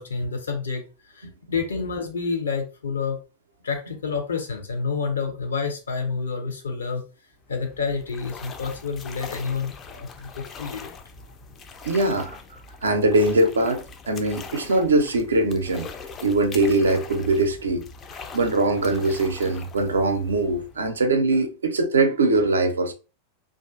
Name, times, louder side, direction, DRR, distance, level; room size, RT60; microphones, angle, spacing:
voice 1, 0.0-3.2 3.6-7.0 7.5-10.9, left 5 dB, 70° left, 0.7 m, -29 dB
sound 1, 7.4-21.1, left 5 dB, 25° left, 0.4 m, -42 dB
voice 2, 11.9-12.4 12.8-15.9 16.2-17.9 18.3-22.9, right 2 dB, 70° right, 0.4 m, -22 dB
2.5 x 2.4 x 2.3 m
figure-of-eight pair, 90°, 0 cm